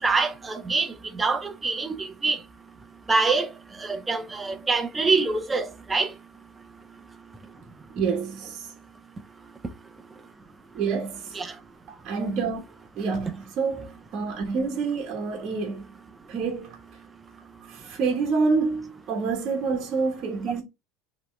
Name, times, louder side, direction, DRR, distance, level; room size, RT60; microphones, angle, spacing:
voice 1, 0.0-2.4 3.1-3.5 3.8-6.1 11.3-11.5, right 3 dB, 15° right, 0.6 m, -25 dB
voice 2, 7.9-8.7 10.7-11.4 12.0-12.6 13.0-15.9 16.3-16.8 17.7-20.6, right 4 dB, 40° right, 1.2 m, -27 dB
5.5 x 3.1 x 3.1 m
cardioid pair, 145°, 0 cm